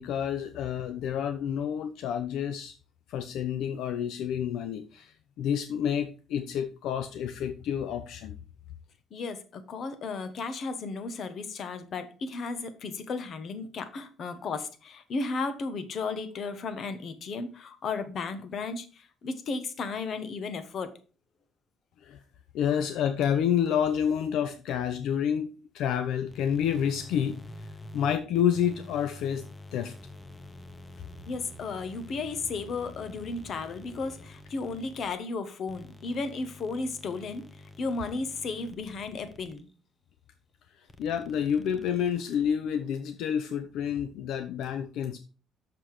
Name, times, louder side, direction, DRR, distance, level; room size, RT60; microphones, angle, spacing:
voice 1, 0.0-2.7 3.1-8.4 22.0-22.2 22.5-27.4 27.9-29.9 41.0-45.2, left 8 dB, 75° left, 0.6 m, -29 dB
voice 2, 9.1-21.0 31.2-37.5 37.8-39.7, left 4 dB, 50° left, 1.2 m, -34 dB
sound 1, 26.3-39.7 40.9-42.5, left 2 dB, 20° left, 0.8 m, -48 dB
6.6 x 5.8 x 4.8 m
cardioid pair, 120°, 0 cm